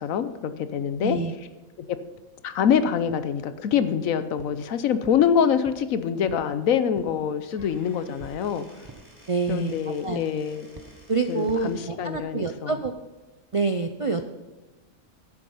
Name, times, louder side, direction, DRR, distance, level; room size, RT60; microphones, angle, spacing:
voice 1, 0.0-1.2 1.8-2.0 2.4-8.7 9.5-10.7 11.3-12.8, left 8 dB, 75° left, 12 dB, 1.1 m, -25 dB
voice 2, 1.0-1.3 9.3-9.7 10.0-10.2 11.1-12.9 13.5-14.2, right 4 dB, 50° right, 7 dB, 0.3 m, -26 dB
sound 1, 3.1-3.2 3.7-4.0 4.4-4.6 5.0-5.9 6.3-6.5 6.9-7.2 7.6-7.8 8.2-8.5 8.8-9.1 9.5-9.7 10.1-10.4 10.7-10.9 11.5-11.7 12.1-12.3 12.8-13.0, right 3 dB, 20° right, 0.7 m, -46 dB
Squeak / Wood, 7.5-11.9, equal, 30° left, 4.0 m, -53 dB
11.0 x 8.7 x 5.5 m, 1.1 s
omnidirectional pair, 1.5 m